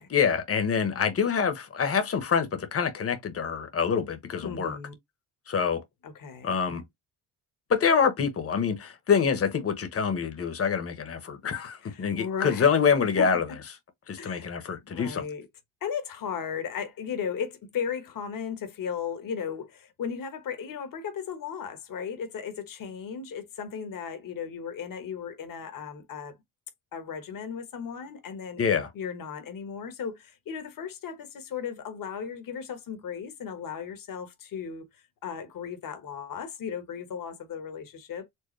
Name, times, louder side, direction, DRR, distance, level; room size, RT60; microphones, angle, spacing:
voice 1, 0.1-4.8 5.5-5.8 6.4-6.8 7.7-13.4 14.1-15.2 28.6-28.9, left 6 dB, 35° left, 1.2 m, -26 dB
voice 2, 4.4-4.9 6.0-6.6 11.8-12.7 13.2-13.3 14.2-14.5 14.8-15.5 15.8-26.3 26.9-28.6 28.9-38.3, left 7 dB, 55° left, 1.4 m, -36 dB
4.7 x 2.1 x 3.2 m
supercardioid pair, 70°, 39 cm